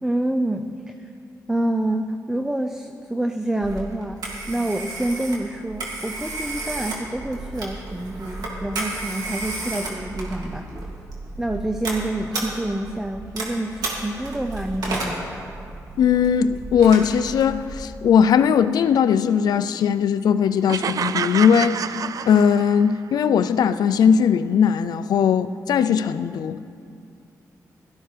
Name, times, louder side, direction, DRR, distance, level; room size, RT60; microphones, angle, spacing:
voice 1, 0.0-1.1 1.5-10.9 11.4-15.4, right 1 dB, 10° right, 6 dB, 0.6 m, -27 dB
Telephone, 3.6-17.9, right 2 dB, 80° right, 2.6 m, -33 dB
voice 2, 16.0-21.8 22.3-26.6, left 7 dB, 80° left, 12 dB, 0.4 m, -19 dB
sound 1, 20.7-23.0, right 7 dB, 60° right, 0.4 m, -28 dB
17.0 x 13.5 x 3.4 m, 2.4 s
cardioid pair, 75°, 7 cm